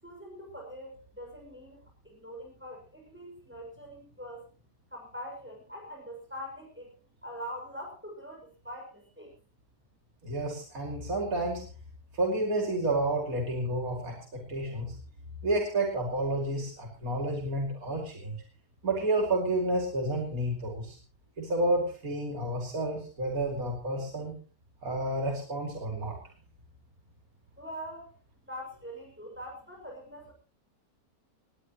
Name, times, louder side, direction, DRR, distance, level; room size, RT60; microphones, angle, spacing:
voice 1, 0.0-1.8 2.0-4.4 4.9-6.9 7.2-9.3 27.6-28.1 28.5-30.3, equal, 5° right, 0 dB, 6.3 m, -43 dB
voice 2, 10.2-11.6 12.1-14.9 15.4-18.4 18.8-21.0 21.4-24.3 24.8-26.1, right 1 dB, 70° right, 0 dB, 3.3 m, -30 dB
20.0 x 18.5 x 3.1 m, 0.37 s
omnidirectional pair, 1.5 m